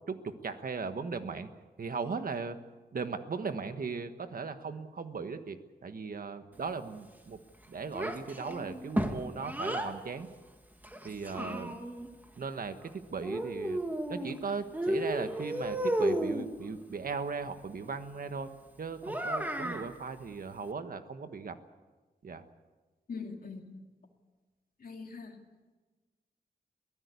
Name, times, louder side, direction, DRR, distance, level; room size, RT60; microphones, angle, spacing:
voice 1, 0.0-1.5 1.8-2.6 2.9-7.4 7.7-10.3 11.0-11.7 12.4-13.8 14.1-18.5 18.8-21.6 22.2-22.4, right 5 dB, 60° right, 9 dB, 1.4 m, -37 dB
Child speech kid speaking, 7.9-9.9 10.8-12.1 13.2-14.4 14.7-16.5 19.0-19.9, right 1 dB, 10° right, 1.6 m, -33 dB
voice 2, 23.1-23.8 24.8-25.4, left 4 dB, 60° left, 3 dB, 2.2 m, -42 dB
23.0 x 16.0 x 8.4 m, 1.3 s
wide cardioid pair, 155°, 17 cm